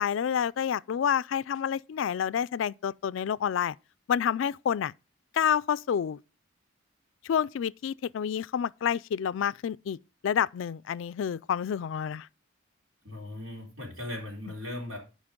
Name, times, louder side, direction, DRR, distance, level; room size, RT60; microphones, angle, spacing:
voice 1, 0.0-3.8 4.1-4.9 5.3-6.2 7.2-10.0 10.2-12.3, left 8 dB, 70° left, 0.3 m, -28 dB
voice 2, 13.0-15.0, left 1 dB, 85° right, 3.9 m, -38 dB
12.5 x 5.2 x 3.7 m
head